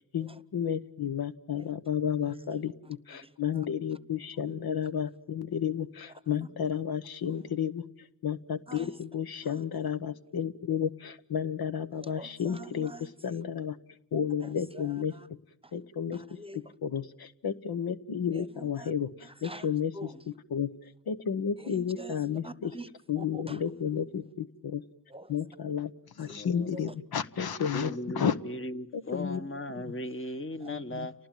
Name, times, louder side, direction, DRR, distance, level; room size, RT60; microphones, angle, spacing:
voice 1, 0.1-2.7 3.1-7.8 8.2-13.8 14.1-15.2 15.7-16.2 16.5-19.1 19.4-19.9 20.5-20.7 21.1-22.7 23.1-24.8 25.3-25.9 26.2-28.4 29.1-29.4 30.7-31.1, left 8 dB, 80° left, 12 dB, 1.1 m, -32 dB
voice 2, 2.2-3.7 6.4-6.5 7.2-7.5 8.7-9.0 9.4-9.6 11.9-13.4 14.4-15.3 15.6-15.7 16.1-16.7 18.3-18.9 19.2-20.3 21.6-22.9 23.2-23.8 25.1-25.3 26.2-26.4 26.7-26.9 30.6-30.7, right 1 dB, 15° right, 17 dB, 1.0 m, -47 dB
voice 3, 26.4-26.8 27.7-31.1, left 1 dB, 35° left, 9 dB, 1.4 m, -37 dB
30.0 x 19.5 x 9.1 m, 0.79 s
cardioid pair, 65°, 37 cm